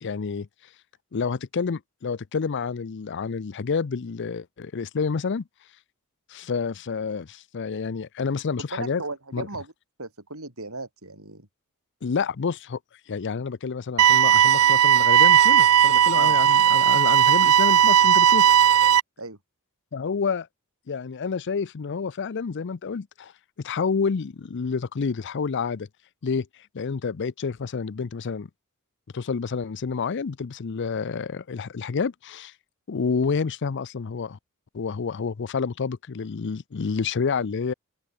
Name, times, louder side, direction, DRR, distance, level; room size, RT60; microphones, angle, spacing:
voice 1, 0.0-0.5 1.1-5.4 6.3-9.0 9.3-9.5 12.0-12.8 13.1-18.8 19.9-20.5 20.9-23.3 23.6-25.9 26.2-26.5 26.7-28.5 29.1-32.5 32.9-34.4 34.7-37.7, left 5 dB, 55° left, 0.5 m, -29 dB
voice 2, 8.7-9.7 10.0-11.5 16.1-16.4 19.2-19.4, right 3 dB, 70° right, 6.2 m, -36 dB
sound 1, 14.0-19.0, right 9 dB, 85° right, 0.6 m, -17 dB
open air
head